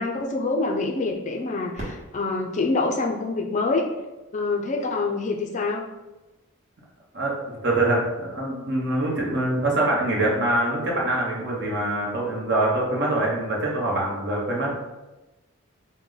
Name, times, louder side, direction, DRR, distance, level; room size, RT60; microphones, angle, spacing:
voice 1, 0.0-3.9 4.3-5.9, left 3 dB, 35° left, 1 dB, 0.4 m, -26 dB
Fireworks, 1.7-4.5 5.2-5.3 6.0-6.4 8.3-8.4, right 1 dB, 30° right, 1.2 m, -42 dB
voice 2, 7.1-14.7, right 1 dB, 50° right, -2 dB, 0.9 m, -24 dB
4.7 x 2.1 x 3.8 m, 1.1 s
head